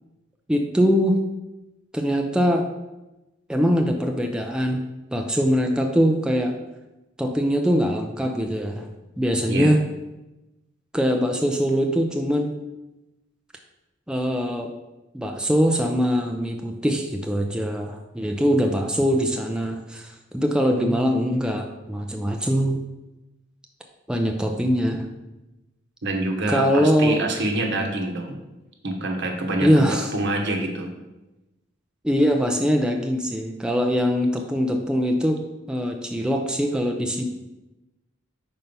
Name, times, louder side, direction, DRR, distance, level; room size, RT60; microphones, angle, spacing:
voice 1, 0.5-1.2 1.9-2.7 3.5-4.8 5.1-6.6 7.2-8.9 9.2-9.8 10.9-12.5 14.1-14.7 15.1-22.8 24.1-25.1 26.5-27.2 29.6-30.1 32.0-37.2, equal, 5° right, 2 dB, 0.4 m, -22 dB
voice 2, 20.7-21.0 26.0-28.4 28.8-29.9 30.1-30.9, right 2 dB, 60° right, 2 dB, 1.1 m, -26 dB
5.5 x 4.3 x 5.3 m, 1.0 s
head